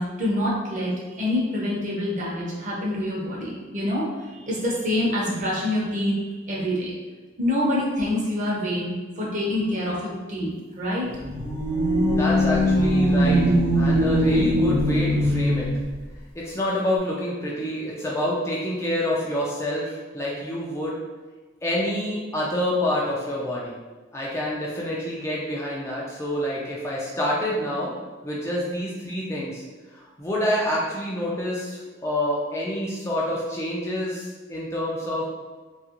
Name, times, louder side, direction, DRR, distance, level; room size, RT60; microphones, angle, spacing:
voice 1, 0.0-6.9 7.4-11.1, left 1 dB, 40° right, -5 dB, 0.7 m, -26 dB
sound 1, 11.1-15.9, equal, 70° right, 1.0 m, -21 dB
voice 2, 12.1-15.7 16.4-21.0 21.6-23.7 24.1-27.9 28.2-29.6 29.9-35.2, left 1 dB, 15° left, -5 dB, 0.3 m, -27 dB
2.8 x 2.4 x 2.9 m, 1.3 s
head